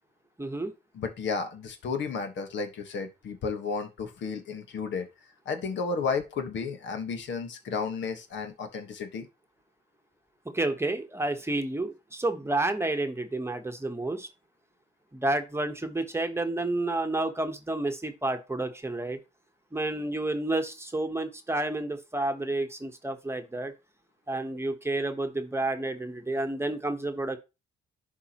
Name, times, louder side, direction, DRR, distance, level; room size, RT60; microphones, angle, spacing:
voice 1, 0.4-0.7 10.5-14.3 15.1-19.2 19.7-23.7 24.3-27.4, right 2 dB, 15° right, 6 dB, 1.1 m, -30 dB
voice 2, 0.9-5.1 5.4-9.3, left 5 dB, 65° left, 6 dB, 1.4 m, -32 dB
11.0 x 4.9 x 3.0 m, 0.27 s
cardioid pair, 90°, 20 cm